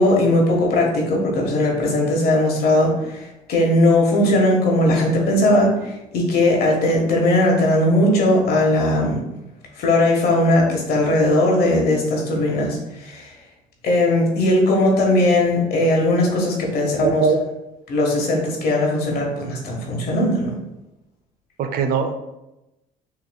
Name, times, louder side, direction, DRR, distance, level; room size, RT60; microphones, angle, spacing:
voice 1, 0.0-9.2 9.8-13.3 13.8-17.2 17.9-20.5, left 1 dB, 65° left, -1 dB, 1.4 m, -18 dB
voice 2, 17.0-17.4 21.6-22.1, right 5 dB, 60° right, 6 dB, 0.6 m, -20 dB
5.7 x 3.0 x 2.3 m, 0.94 s
cardioid pair, 110°, 17 cm